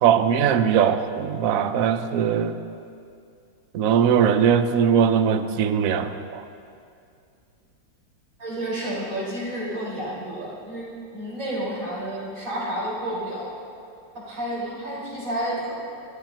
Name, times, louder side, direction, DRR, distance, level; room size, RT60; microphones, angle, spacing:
voice 1, 0.0-2.5 3.7-6.4, right 8 dB, 60° right, 9 dB, 1.0 m, -20 dB
voice 2, 8.4-13.5 14.1-15.7, right 1 dB, 75° right, -6 dB, 5.8 m, -30 dB
26.5 x 16.0 x 3.0 m, 2.5 s
omnidirectional pair, 2.1 m